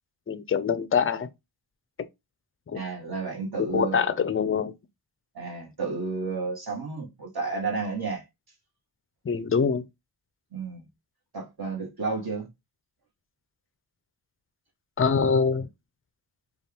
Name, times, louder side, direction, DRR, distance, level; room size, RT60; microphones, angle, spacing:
voice 1, 0.3-1.3 2.7-2.8 3.6-4.7 9.3-9.8 15.0-15.7, left 6 dB, 30° left, 0.4 m, -24 dB
voice 2, 2.7-4.3 5.3-8.2 10.5-10.9 11.3-12.5, right 4 dB, 50° right, 1.4 m, -32 dB
4.2 x 2.4 x 3.3 m
wide cardioid pair, 85°, 47 cm